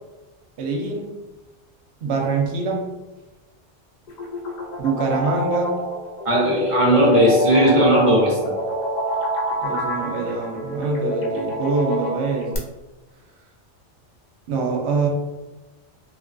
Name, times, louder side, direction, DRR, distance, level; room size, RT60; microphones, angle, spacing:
voice 1, 0.6-1.1 2.0-2.9 4.8-5.9 9.6-12.6 14.5-15.1, right 3 dB, 70° right, 1 dB, 0.8 m, -24 dB
sound 1, 4.1-12.6, equal, 60° left, 0.4 m, -25 dB
voice 2, 6.2-8.5, right 1 dB, 35° right, -6 dB, 0.6 m, -17 dB
2.7 x 2.2 x 2.5 m, 1.1 s
omnidirectional pair, 1.2 m